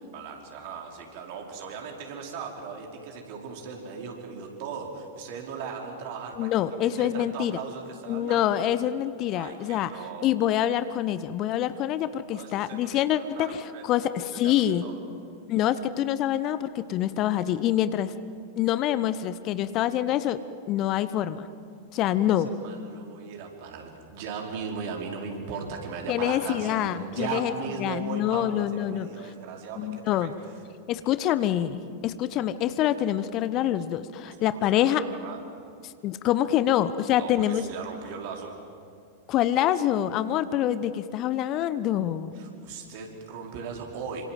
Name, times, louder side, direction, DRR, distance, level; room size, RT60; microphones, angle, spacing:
voice 1, 0.1-8.6 9.3-10.3 12.3-13.8 14.3-15.0 21.9-30.3 34.2-35.4 37.1-38.5 42.3-44.2, right 5 dB, 50° right, 1 dB, 4.8 m, -38 dB
voice 2, 6.4-7.6 8.1-9.9 10.2-14.8 15.5-18.1 18.6-20.4 20.7-21.5 21.9-22.5 26.1-27.5 27.8-29.1 29.8-30.3 30.9-35.0 36.0-37.6 39.3-42.4, left 11 dB, 35° left, 14 dB, 0.9 m, -26 dB
27.5 x 26.0 x 7.8 m, 2.4 s
figure-of-eight pair, 90°, 0 cm